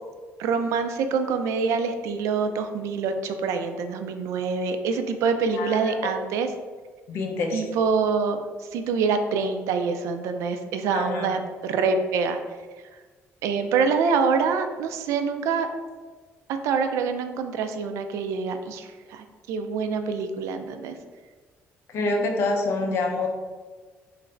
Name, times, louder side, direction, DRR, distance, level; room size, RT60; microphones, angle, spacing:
voice 1, 0.4-6.5 7.5-8.4 8.7-12.4 13.4-15.7 16.6-20.9, right 5 dB, 85° right, 7 dB, 0.4 m, -25 dB
voice 2, 5.5-6.1 7.1-7.7 10.9-11.3 21.9-23.3, left 3 dB, 60° left, 3 dB, 0.5 m, -27 dB
3.0 x 2.5 x 4.4 m, 1.4 s
cardioid pair, 175°, 5 cm